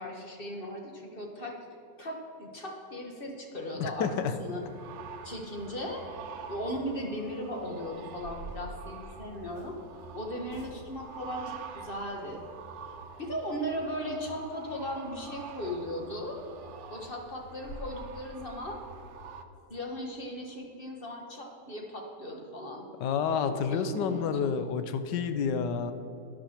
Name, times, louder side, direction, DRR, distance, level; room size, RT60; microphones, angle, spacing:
voice 1, 0.0-1.6 2.0-4.1 4.4-4.7 5.2-6.0 6.5-9.8 10.1-12.4 13.2-16.4 16.9-18.8 19.7-22.9 23.4-24.5, equal, 35° left, 1 dB, 1.3 m, -37 dB
voice 2, 3.8-4.3 23.0-25.9, left 6 dB, 85° left, 10 dB, 1.4 m, -29 dB
sound 1, 4.0-19.4, right 6 dB, 60° right, 0.8 m, -47 dB
sound 2, 8.0-9.8 10.5-11.1 15.7-15.8 16.2-16.3 16.7-16.8 17.2-17.3 17.6-17.9, right 1 dB, 50° left, 1.6 m, -46 dB
12.5 x 10.5 x 4.4 m, 2.9 s
omnidirectional pair, 1.8 m